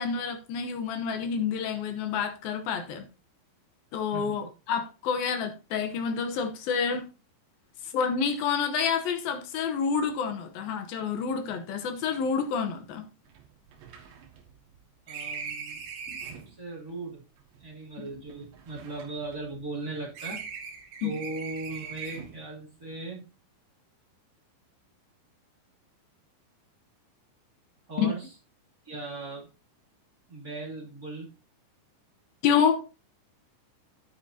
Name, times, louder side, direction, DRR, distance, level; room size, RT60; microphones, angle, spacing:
voice 1, 0.0-3.0 3.9-7.1 7.8-13.0 16.1-16.2 18.0-18.1 21.0-21.2 28.0-28.1 32.4-32.8, left 6 dB, 70° left, 2.3 m, -28 dB
sound 1, 12.4-12.5 12.8-12.9 13.3-16.6 17.4-19.8 20.1-22.5, right 6 dB, 80° right, 3.8 m, -41 dB
voice 2, 15.1-15.8 16.3-17.3 17.6-20.5 21.0-23.3 27.9-28.3 28.8-29.5 30.3-31.4, right 2 dB, 25° right, 2.4 m, -38 dB
10.0 x 9.5 x 2.8 m
omnidirectional pair, 5.2 m